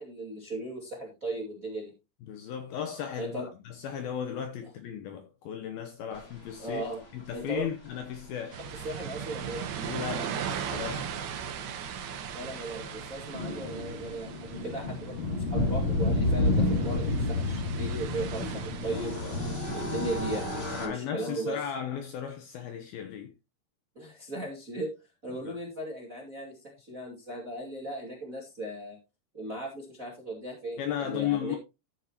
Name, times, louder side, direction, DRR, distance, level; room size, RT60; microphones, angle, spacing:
voice 1, 0.0-1.9 3.1-3.5 6.6-7.0 7.3-7.7 8.7-9.9 12.3-19.1 19.7-21.6 23.9-24.9 25.2-29.0 29.3-31.6, right 1 dB, 30° right, 1.6 m, -37 dB
voice 2, 2.3-6.8 7.1-8.6 9.8-11.1 19.2-19.4 20.7-23.3 25.5-25.6 30.8-31.6, left 9 dB, 75° left, 2.3 m, -35 dB
sound 1, 8.1-8.2 9.5-9.6 9.8-9.9 10.1-10.3 12.8-20.9, left 2 dB, 20° left, 1.6 m, -30 dB
sound 2, 8.5-19.7, right 8 dB, 70° right, 3.0 m, -39 dB
14.5 x 6.5 x 2.9 m
omnidirectional pair, 5.2 m